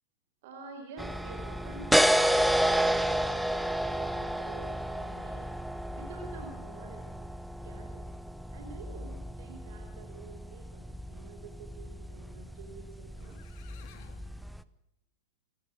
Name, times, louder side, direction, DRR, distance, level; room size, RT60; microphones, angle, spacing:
voice 1, 0.4-5.5 5.9-7.2 7.6-8.1 8.5-13.4, right 4 dB, 50° right, 4 dB, 4.4 m, -48 dB
sound 1, 1.0-14.6, equal, ahead, 0.9 m, -31 dB
sound 2, 12.8-12.9 13.2-14.3, left 9 dB, 45° left, 2.9 m, -56 dB
29.0 x 15.5 x 7.1 m, 0.84 s
figure-of-eight pair, 90°, 0 cm